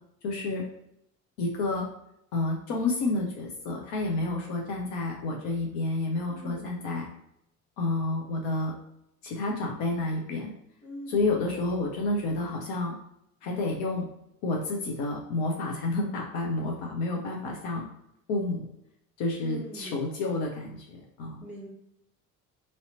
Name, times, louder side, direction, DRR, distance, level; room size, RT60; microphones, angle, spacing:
voice 1, 0.2-0.6 1.4-1.9 2.3-7.1 7.8-8.7 9.2-10.5 11.1-13.0 13.4-14.0 14.4-17.9 18.3-18.7 19.2-21.4, left 2 dB, 55° left, 0 dB, 0.7 m, -30 dB
voice 2, 6.3-6.8 10.8-11.3 19.4-20.0 21.4-21.7, equal, 5° right, -5 dB, 1.0 m, -42 dB
3.0 x 2.7 x 2.7 m, 0.79 s
figure-of-eight pair, 55°, 43 cm